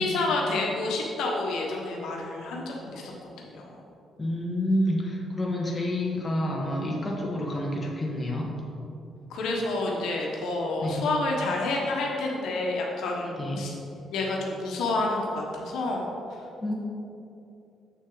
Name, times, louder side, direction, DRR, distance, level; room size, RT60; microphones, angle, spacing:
voice 1, 0.0-3.6 9.3-13.7 14.1-16.4, left 2 dB, 80° left, -1 dB, 1.2 m, -29 dB
voice 2, 4.2-8.5 10.8-11.1 13.4-13.7 16.6-16.7, left 1 dB, 20° left, -2 dB, 1.5 m, -28 dB
7.8 x 6.2 x 3.9 m, 2.7 s
cardioid pair, 90°, 0 cm